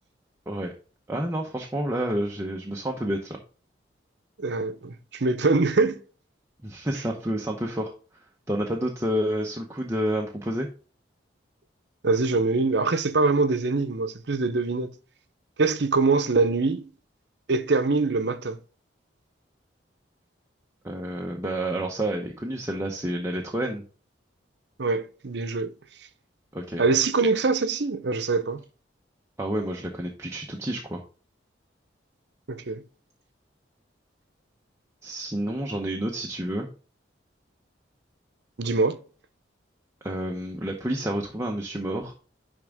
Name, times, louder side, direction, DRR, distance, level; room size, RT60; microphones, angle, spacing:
voice 1, 1.1-3.4 6.6-7.9 8.5-10.7 20.8-23.8 26.5-26.8 29.4-31.0 35.0-36.7 40.0-42.1, right 1 dB, 15° right, 0.8 m, -29 dB
voice 2, 4.4-6.0 12.0-14.9 15.6-16.8 17.5-18.6 24.8-25.7 26.8-28.6 32.5-32.8 38.6-39.0, right 3 dB, 65° right, 0.7 m, -23 dB
10.5 x 3.5 x 3.6 m
head